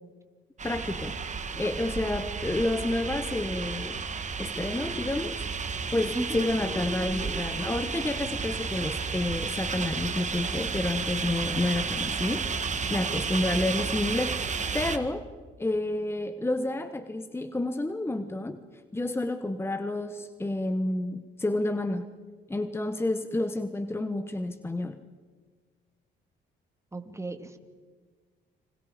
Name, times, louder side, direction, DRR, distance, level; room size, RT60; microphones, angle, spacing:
voice 1, 0.6-1.2 1.5-4.0 4.4-5.5 5.9-15.3 15.6-18.6 18.9-22.1 22.5-25.0, left 2 dB, 10° left, 10 dB, 1.1 m, -30 dB
sound 1, 0.6-15.0, right 5 dB, 35° right, 1.9 m, -32 dB
voice 2, 26.9-27.6, right 2 dB, 15° right, 7 dB, 2.4 m, -34 dB
29.5 x 26.0 x 5.1 m, 1.5 s
cardioid pair, 90°, 20 cm